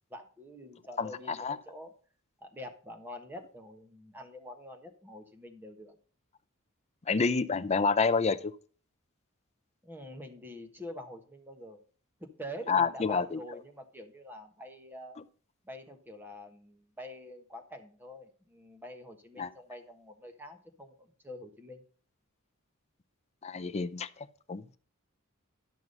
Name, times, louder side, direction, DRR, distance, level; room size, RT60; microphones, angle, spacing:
voice 1, 0.1-1.9 2.4-5.9 9.8-11.8 12.2-15.2 15.6-21.8, equal, 10° right, 5 dB, 1.3 m, -46 dB
voice 2, 1.0-1.6 7.1-8.5 12.7-13.4 19.4-19.5 23.4-24.1 24.5-24.8, left 5 dB, 30° left, 10 dB, 0.5 m, -28 dB
11.5 x 6.0 x 5.3 m, 0.41 s
head